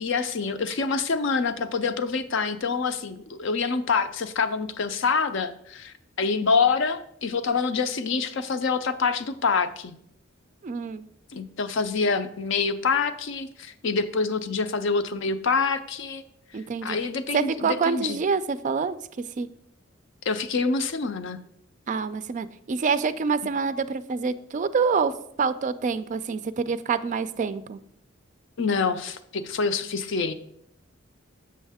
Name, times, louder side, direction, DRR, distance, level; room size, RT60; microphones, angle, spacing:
voice 1, 0.0-9.9 11.3-16.2 16.8-18.2 20.2-21.4 23.4-23.5 28.6-30.3, left 4 dB, 65° left, 10 dB, 0.5 m, -26 dB
voice 2, 10.6-11.0 16.5-17.0 17.3-19.0 19.4-19.5 21.9-25.1 25.4-27.8, right 5 dB, 40° right, 13 dB, 0.3 m, -26 dB
7.4 x 6.3 x 3.5 m, 0.72 s
head